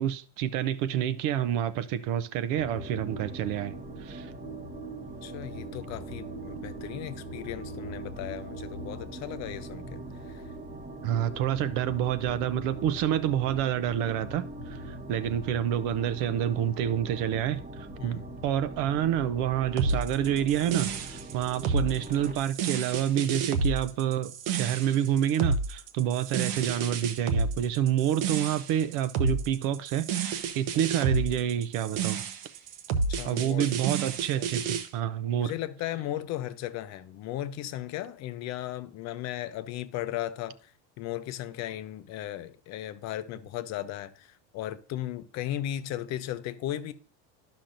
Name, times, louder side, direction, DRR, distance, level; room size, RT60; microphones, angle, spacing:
voice 1, 0.0-4.3 11.0-32.2 33.2-35.5, right 10 dB, 60° right, 0.6 m, -28 dB
sound 1, 2.5-22.4, right 1 dB, 20° right, 0.8 m, -41 dB
voice 2, 5.1-10.0 10.3-10.4 18.0-18.2 33.1-33.7 35.4-40.6 41.0-46.9, left 13 dB, 45° left, 0.6 m, -36 dB
sound 2, 19.8-34.9, right 4 dB, 80° right, 1.0 m, -30 dB
11.5 x 5.9 x 2.5 m
cardioid pair, 155°, 37 cm